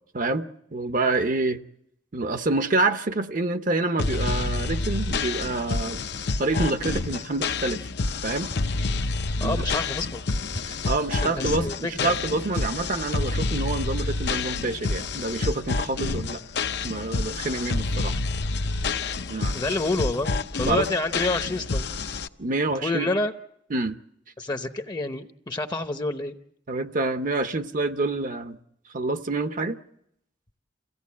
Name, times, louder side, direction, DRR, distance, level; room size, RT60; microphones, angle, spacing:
voice 1, 0.1-1.6 2.1-6.0 6.4-7.9 8.2-8.5 9.4-9.6 10.6-16.4 16.8-18.1 19.3-19.6 20.6-20.9 22.4-23.1 23.7-24.0 26.7-28.6 28.9-29.8, right 2 dB, 50° right, 0.8 m, -27 dB
sound 1, 4.0-22.3, left 3 dB, 65° left, 0.8 m, -28 dB
voice 2, 9.4-10.4 11.2-12.1 19.5-20.3 20.6-21.8 22.8-23.3 24.4-26.3, left 2 dB, 25° left, 0.8 m, -28 dB
27.5 x 16.5 x 8.5 m
head